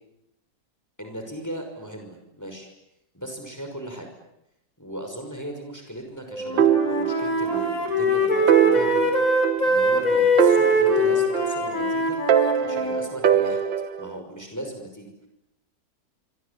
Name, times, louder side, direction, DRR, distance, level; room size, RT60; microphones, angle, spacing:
voice 1, 1.0-2.7 3.1-4.1 4.8-9.1 9.6-12.2 12.6-13.6 14.0-15.3, right 1 dB, 10° left, 4 dB, 5.8 m, -37 dB
Wind instrument woodwind instrument, 6.3-13.1, equal, 45° left, 5.7 m, -23 dB
sound 1, 6.6-7.7 8.0-8.1 8.5-10.0 10.4-11.8 12.3-14.1, right 9 dB, 80° right, 1.9 m, -22 dB
26.5 x 26.0 x 8.5 m, 0.86 s
omnidirectional pair, 1.9 m